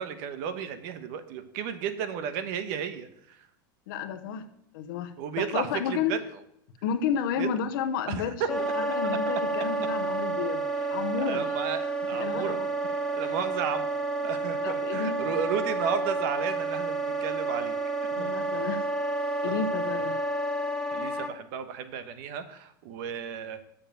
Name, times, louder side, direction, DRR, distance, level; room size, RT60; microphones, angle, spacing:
voice 1, 0.0-3.4 5.2-6.2 7.4-7.5 8.1-8.9 11.2-13.9 14.2-17.7 18.0-18.3 20.9-23.6, right 8 dB, 60° right, 10 dB, 1.2 m, -33 dB
voice 2, 3.9-4.5 4.7-6.1 6.8-11.4 12.1-12.7 14.6-15.4 18.1-18.8 19.4-20.2, left 7 dB, 70° left, 10 dB, 1.1 m, -31 dB
Wind instrument woodwind instrument, 8.5-21.3, right 2 dB, 5° left, 1.2 m, -30 dB
7.1 x 6.9 x 6.9 m, 0.74 s
supercardioid pair, 125°, 11 cm